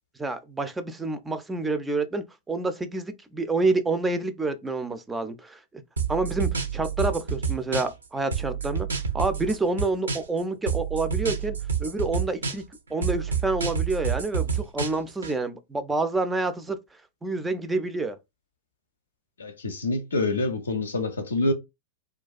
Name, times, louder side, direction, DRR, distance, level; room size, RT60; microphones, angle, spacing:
voice 1, 0.2-5.6 6.1-8.9 9.1-12.6 12.9-16.8 17.2-18.2, right 3 dB, 10° right, 0.3 m, -28 dB
sound 1, 6.0-8.0 8.3-10.4 10.7-12.7 13.0-15.3, right 6 dB, 80° right, 0.5 m, -28 dB
voice 2, 19.4-21.5, left 2 dB, 75° left, 0.5 m, -26 dB
2.3 x 2.2 x 2.3 m
figure-of-eight pair, 100°, 0 cm